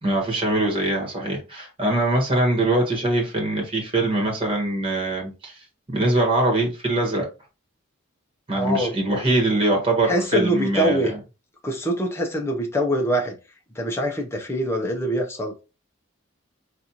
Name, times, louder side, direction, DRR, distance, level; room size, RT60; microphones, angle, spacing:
voice 1, 0.0-5.6 5.9-7.2 8.5-11.1, right 2 dB, 25° right, 1.4 m, -22 dB
voice 2, 8.5-8.9 10.0-11.1 11.6-13.4 13.7-15.5, right 1 dB, 15° left, 0.6 m, -24 dB
4.1 x 2.5 x 2.8 m
head